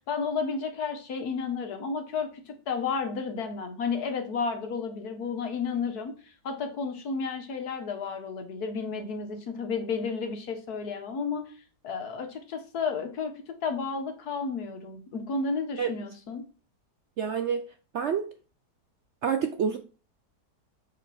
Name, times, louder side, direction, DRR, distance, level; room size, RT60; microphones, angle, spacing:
voice 1, 0.1-6.1 6.4-11.5 11.8-16.4, left 5 dB, 65° left, 1.7 m, -32 dB
voice 2, 17.2-17.7 17.9-18.3 19.2-19.8, right 7 dB, 65° right, 0.7 m, -27 dB
6.4 x 5.0 x 4.2 m
omnidirectional pair, 1.8 m